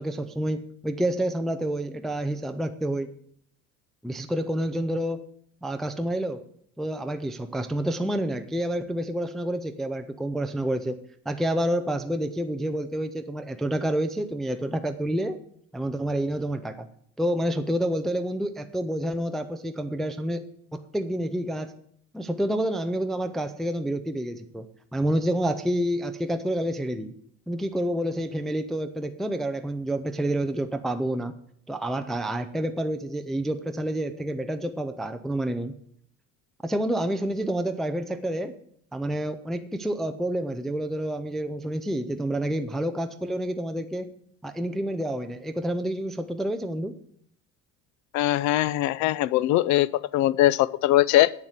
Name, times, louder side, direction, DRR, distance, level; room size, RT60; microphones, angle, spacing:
voice 1, 0.0-3.1 4.0-5.2 5.6-6.4 6.8-11.0 11.3-15.4 15.7-16.9 17.2-21.7 22.1-24.7 24.9-27.1 27.5-31.3 31.7-35.7 36.6-38.6 38.9-44.1 44.4-47.0, right 1 dB, ahead, 7 dB, 0.3 m, -28 dB
voice 2, 48.1-49.9 50.1-51.3, left 14 dB, 65° left, 20 dB, 0.5 m, -21 dB
8.3 x 7.2 x 7.9 m, 0.65 s
cardioid pair, 165°, 31 cm